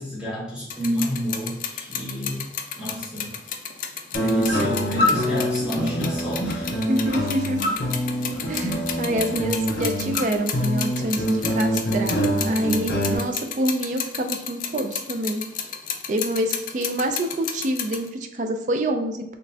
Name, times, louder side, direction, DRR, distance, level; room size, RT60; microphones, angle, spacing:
voice 1, 0.0-2.5 2.8-3.3 4.1-6.7, equal, 5° right, -8 dB, 1.1 m, -29 dB
sound 1, 0.7-18.1, left 8 dB, 50° left, 0.4 m, -32 dB
sound 2, 4.1-13.1, equal, 65° left, 1.0 m, -25 dB
voice 2, 6.9-7.6 8.5-12.2 12.4-15.4 16.1-19.2, right 1 dB, 45° right, 6 dB, 0.4 m, -26 dB
4.0 x 3.2 x 2.8 m, 0.85 s
head